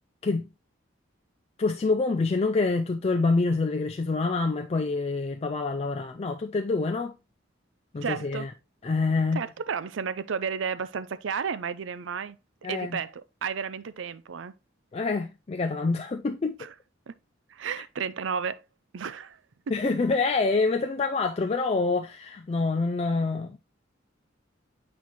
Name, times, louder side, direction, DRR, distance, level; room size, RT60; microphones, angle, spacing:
voice 1, 1.6-7.1 7.9-8.5 8.8-9.4 12.6-13.0 14.9-16.6 19.7-23.6, left 3 dB, 30° left, 0.4 m, -26 dB
voice 2, 8.0-8.5 9.3-12.4 12.7-14.5 16.6-16.7 17.1-17.2 17.5-18.6 18.9-19.4, right 6 dB, 75° right, 0.5 m, -32 dB
8.1 x 4.4 x 3.0 m
head